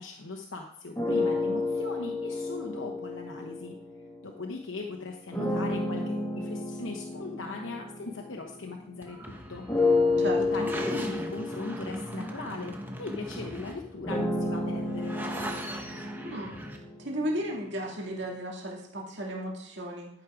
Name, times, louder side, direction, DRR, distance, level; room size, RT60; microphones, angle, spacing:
voice 1, 0.0-3.8 4.2-15.1, left 3 dB, 65° left, 1 dB, 1.1 m, -39 dB
sound 1, 1.0-4.5 5.3-9.1 9.7-17.6, left 2 dB, 10° left, 1.6 m, -31 dB
sound 2, 9.0-16.8, right 1 dB, 10° right, 1.0 m, -39 dB
voice 2, 10.2-10.7 16.2-16.6 17.0-20.1, equal, 55° right, -1 dB, 2.2 m, -34 dB
11.5 x 6.4 x 5.0 m, 0.71 s
head